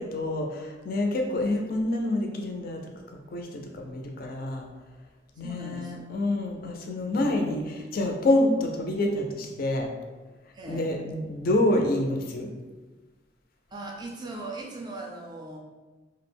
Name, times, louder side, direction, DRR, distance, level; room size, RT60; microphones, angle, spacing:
voice 1, 0.0-2.8 3.3-4.7 5.4-9.9 10.7-12.5, left 1 dB, 50° left, 3 dB, 0.4 m, -27 dB
voice 2, 5.4-6.0 7.1-7.6 10.5-10.9 13.7-15.6, right 2 dB, 20° right, -1 dB, 0.3 m, -39 dB
2.3 x 2.0 x 3.2 m, 1.2 s
head